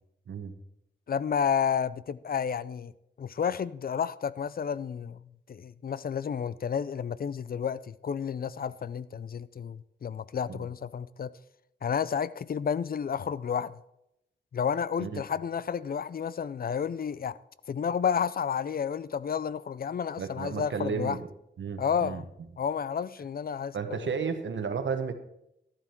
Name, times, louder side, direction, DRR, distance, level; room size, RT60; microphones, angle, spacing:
voice 1, 1.1-2.9 3.2-5.2 5.5-11.3 11.8-13.8 14.5-17.4 17.7-21.2 21.8-22.2 22.6-24.1, left 7 dB, 50° left, 0.4 m, -31 dB
voice 2, 20.2-21.3 21.6-22.2 23.7-25.1, right 5 dB, 80° right, 1.2 m, -33 dB
12.5 x 11.0 x 4.5 m
wide cardioid pair, 130°, 19 cm